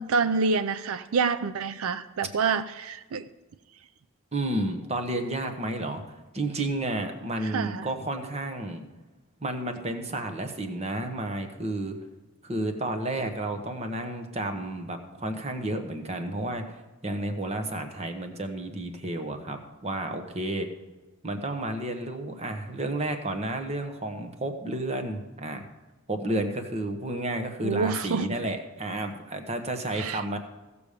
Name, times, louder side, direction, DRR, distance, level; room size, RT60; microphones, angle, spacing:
voice 1, 0.0-3.2 7.4-7.9 27.6-28.4 29.9-30.2, right 4 dB, 80° right, 12 dB, 0.5 m, -27 dB
voice 2, 4.3-6.0 6.3-8.8 9.4-12.0 12.4-20.7 21.2-25.6 26.1-30.4, right 1 dB, 30° right, 6 dB, 1.1 m, -31 dB
16.0 x 6.9 x 5.0 m, 1.2 s
head